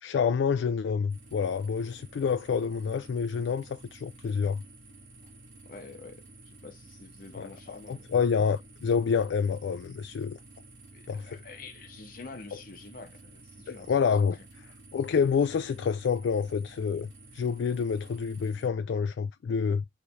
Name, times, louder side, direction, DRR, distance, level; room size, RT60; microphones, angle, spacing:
voice 1, 0.0-4.6 7.4-10.4 11.1-11.4 13.7-14.7 14.9-19.8, left 6 dB, 75° left, 0.3 m, -28 dB
sound 1, 1.1-18.7, right 2 dB, 75° right, 2.1 m, -52 dB
voice 2, 5.7-8.1 10.9-13.9, left 3 dB, 50° left, 0.8 m, -47 dB
4.0 x 3.1 x 3.5 m
head